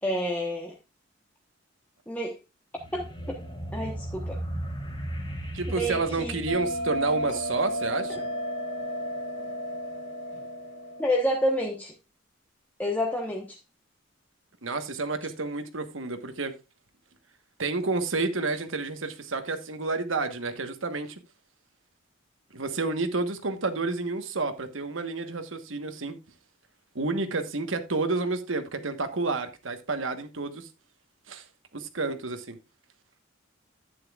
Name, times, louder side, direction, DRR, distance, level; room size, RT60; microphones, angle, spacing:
voice 1, 0.0-0.8 2.1-2.4 2.9-3.4 3.7-4.4 5.7-6.4 11.0-11.9 12.8-13.6, equal, 10° left, 1.1 m, -29 dB
sound 1, 2.8-7.7, right 1 dB, 25° left, 2.2 m, -36 dB
voice 2, 5.5-8.3 14.6-16.6 17.6-21.2 22.5-26.2 26.9-30.7 31.3-31.4 31.7-32.6, right 3 dB, 85° right, 1.3 m, -30 dB
Bell, 6.5-11.5, equal, 80° left, 3.8 m, -33 dB
11.5 x 9.3 x 2.4 m
head